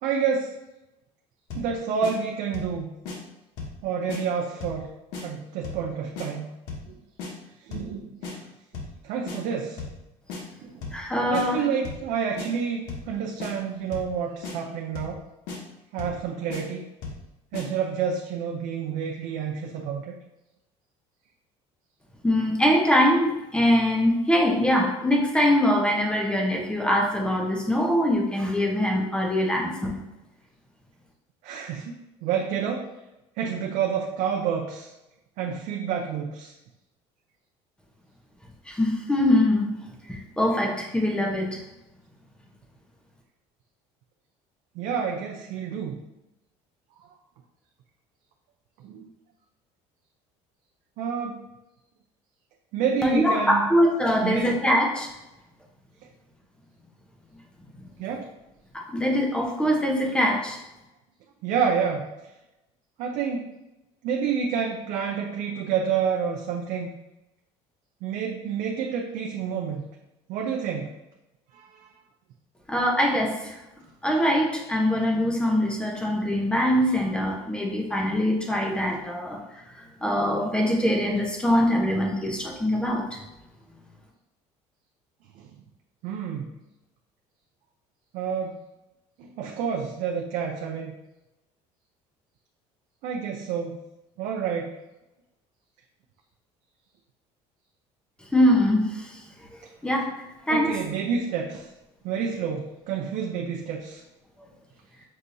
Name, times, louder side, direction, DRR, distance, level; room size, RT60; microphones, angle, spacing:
voice 1, 0.0-0.5 1.6-2.9 3.8-4.9 5.2-6.5 6.9-7.0 7.6-8.5 9.0-9.8 10.6-10.9 11.3-15.2 15.9-16.8 17.5-20.1 31.4-32.9 33.4-34.9 35.4-36.5 44.7-46.0 48.8-49.1 51.0-51.4 52.7-53.6 54.2-54.6 58.0-58.3 61.4-62.1 63.0-63.5 64.0-66.9 68.0-69.9 70.3-70.9 71.5-71.9 78.9-79.0 85.4-85.5 86.0-86.5 88.1-88.6 89.2-91.0 93.0-93.8 94.2-94.8 100.5-101.7 102.0-104.0, right 7 dB, 75° right, 1 dB, 0.5 m, -29 dB
sound 1, 1.5-1.7 2.0-2.1 2.5-2.8 3.1-3.2 3.6-3.8 4.1-4.2 4.6-4.8 5.1-5.2 5.6-5.9 6.2-6.3 6.7-6.9 7.2-7.3 7.7-7.9 8.2-8.3 8.7-9.0 9.3-9.4 9.8-10.0 10.3-10.4 10.8-11.0 11.3-11.5 11.8-12.1 12.4-12.5 12.9-13.1 13.4-13.5 13.9-14.1 14.4-14.6 14.9-15.2 15.5-15.6 16.0-16.2 16.5-16.6 17.0-17.2 17.5-17.7, left 4 dB, 85° left, 1.0 m, -35 dB
voice 2, 10.9-11.6 22.2-29.9 38.7-39.7 40.1-41.6 53.0-55.1 58.7-60.6 72.7-73.6 74.0-79.4 79.7-83.2 98.3-99.2 99.8-100.1 100.5-100.7, equal, 5° left, 0 dB, 0.8 m, -23 dB
6.4 x 2.7 x 2.7 m, 0.96 s
cardioid pair, 125°, 13 cm